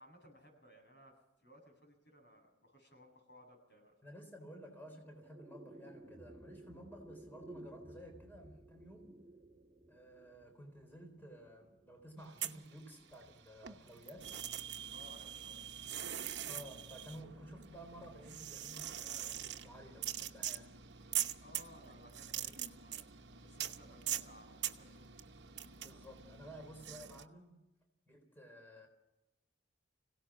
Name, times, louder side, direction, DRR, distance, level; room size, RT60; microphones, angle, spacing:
voice 1, 0.0-3.9 14.9-15.6 21.4-23.1 23.3-25.2, equal, 85° left, 1 dB, 7.9 m, -60 dB
voice 2, 4.0-9.2 9.9-14.3 16.4-20.8 25.8-27.6 28.1-28.9, equal, 10° left, 3 dB, 3.8 m, -53 dB
sound 1, 4.5-15.0, right 1 dB, 15° right, 2.0 m, -57 dB
sound 2, 12.2-13.3 13.6-27.2, right 11 dB, 65° right, 1.0 m, -43 dB
25.0 x 17.5 x 6.2 m, 0.98 s
head